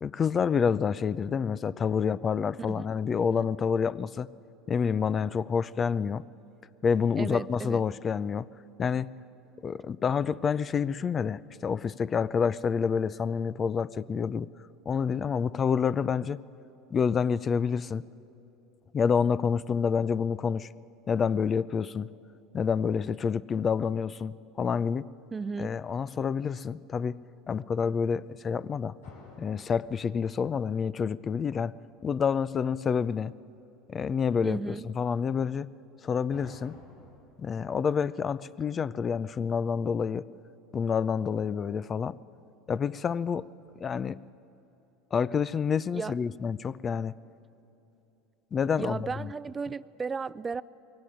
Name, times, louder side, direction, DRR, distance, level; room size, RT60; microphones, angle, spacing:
voice 1, 0.0-4.3 4.7-6.2 6.8-8.5 8.8-9.1 9.6-14.5 14.9-16.4 16.9-18.0 18.9-20.7 21.1-22.1 22.5-25.1 25.6-29.0 29.4-31.7 32.0-33.3 33.9-35.7 36.0-36.8 37.4-40.3 40.7-42.2 42.7-43.5 43.8-44.2 45.1-47.2 48.5-49.3, left 6 dB, 35° left, 18 dB, 0.5 m, -28 dB
voice 2, 7.2-7.8 25.3-25.8 34.4-34.8 45.9-46.2 48.8-50.6, right 5 dB, 25° right, 18 dB, 0.5 m, -35 dB
sound 1, 29.0-32.0 36.3-37.3, left 2 dB, 85° left, 4.5 m, -53 dB
21.0 x 17.0 x 10.0 m, 2.9 s
hypercardioid pair, 80°, 0 cm